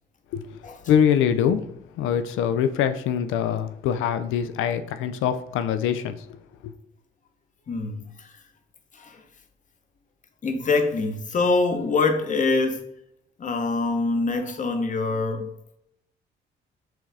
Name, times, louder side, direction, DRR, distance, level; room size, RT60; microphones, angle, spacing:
voice 1, 0.9-1.7 2.0-6.4 6.6-6.7, left 8 dB, 90° left, 0.4 m, -23 dB
voice 2, 7.7-8.4 8.9-9.2 10.4-12.8 13.4-15.5, left 3 dB, 40° left, 0.8 m, -24 dB
6.0 x 2.4 x 3.3 m
cardioid pair, 90°, 20 cm